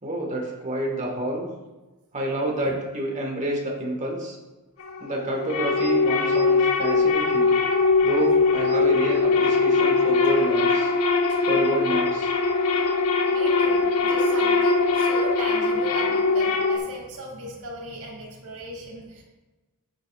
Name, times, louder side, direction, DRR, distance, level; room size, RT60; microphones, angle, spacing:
voice 1, 0.0-1.5 2.1-4.4 5.0-7.5 8.0-10.9 11.5-12.3, right 1 dB, 35° right, -1 dB, 1.8 m, -28 dB
sound 1, 4.8-16.8, left 4 dB, 75° left, 1.0 m, -21 dB
voice 2, 13.3-19.2, right 1 dB, 80° right, -2 dB, 2.7 m, -37 dB
10.5 x 8.8 x 2.5 m, 1.2 s
head